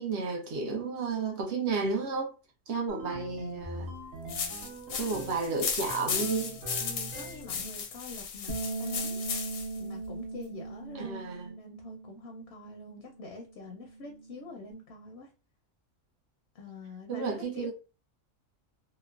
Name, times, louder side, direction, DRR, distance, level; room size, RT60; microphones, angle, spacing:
voice 1, 0.0-2.3 2.7-3.9 4.9-6.6 10.9-11.5 17.1-17.7, right 4 dB, 65° right, 0.8 m, -32 dB
sound 1, 2.9-5.5 5.9-7.7, right 1 dB, 85° right, 1.2 m, -43 dB
sound 2, 4.3-9.8, left 6 dB, 85° left, 1.0 m, -35 dB
voice 2, 4.9-5.7 6.8-9.2 9.8-15.3 16.5-17.7, left 2 dB, 65° left, 0.7 m, -45 dB
Bass guitar, 8.5-14.7, right 3 dB, 40° right, 1.1 m, -40 dB
2.9 x 2.1 x 2.3 m
omnidirectional pair, 1.4 m